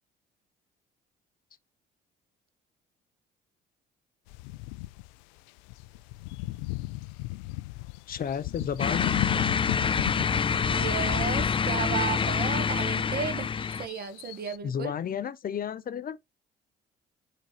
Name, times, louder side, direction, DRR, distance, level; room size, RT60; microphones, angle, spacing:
sound 1, 4.3-5.1 5.5-11.7 12.0-12.1 12.3-12.9 13.6-14.6, left 19 dB, 85° left, 0.4 m, -36 dB
voice 1, 8.1-9.1 14.6-16.2, left 8 dB, 45° left, 0.9 m, -32 dB
sound 2, 8.8-13.9, left 6 dB, 25° left, 0.5 m, -26 dB
voice 2, 10.6-13.5 13.8-14.9, right 8 dB, 50° right, 1.4 m, -34 dB
7.9 x 4.6 x 2.9 m
hypercardioid pair, 60°, 20 cm